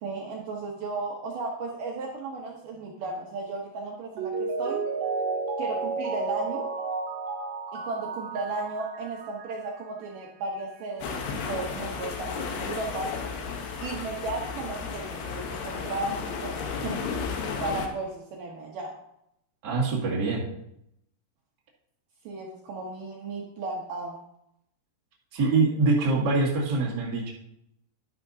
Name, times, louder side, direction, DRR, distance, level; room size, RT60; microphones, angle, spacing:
voice 1, 0.0-4.8 5.6-6.7 7.7-13.1 13.8-16.5 16.8-16.9 17.6-18.9 22.2-24.2, right 3 dB, 85° right, -1 dB, 1.8 m, -34 dB
Mallet percussion, 4.2-9.7 10.0-10.1, right 4 dB, 70° right, 2.8 m, -32 dB
sound 1, 11.0-17.9, left 5 dB, 70° left, 2.7 m, -33 dB
voice 2, 19.6-20.5 25.3-27.3, right 3 dB, 35° right, -4 dB, 1.7 m, -24 dB
11.5 x 10.0 x 2.8 m, 0.77 s
omnidirectional pair, 5.5 m